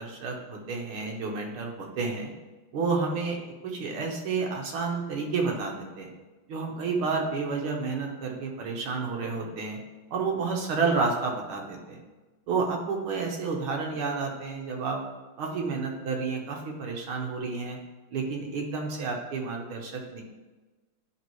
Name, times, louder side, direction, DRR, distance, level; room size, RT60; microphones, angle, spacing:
voice 1, 0.0-2.3 2.7-3.4 3.6-6.1 6.5-9.8 10.1-12.0 12.5-15.0 15.4-17.8 18.1-20.2, right 4 dB, 80° right, 1 dB, 1.9 m, -30 dB
10.5 x 3.5 x 3.0 m, 1.2 s
omnidirectional pair, 2.4 m